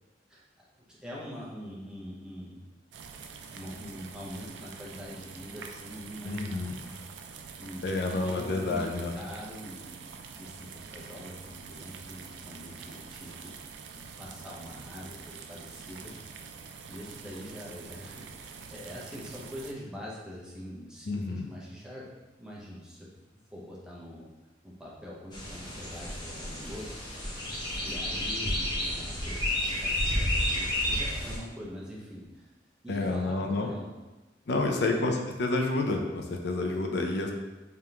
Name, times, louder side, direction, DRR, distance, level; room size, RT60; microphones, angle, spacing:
voice 1, 0.3-2.6 3.5-8.9 9.1-10.1 10.4-13.5 14.0-16.1 16.6-22.1 22.4-23.1 23.5-24.3 24.6-27.0 27.8-32.5 32.8-33.9 34.5-35.3, equal, 5° right, -6 dB, 0.8 m, -44 dB
sound 1, 2.9-19.7, right 6 dB, 75° right, 0.4 m, -46 dB
voice 2, 6.2-6.8 7.8-9.1 21.1-21.5 32.9-33.7 34.5-37.3, left 2 dB, 70° left, 3 dB, 0.5 m, -29 dB
sound 2, 25.3-31.4, left 1 dB, 25° left, 0.9 m, -31 dB
3.6 x 3.5 x 2.8 m, 1.1 s
head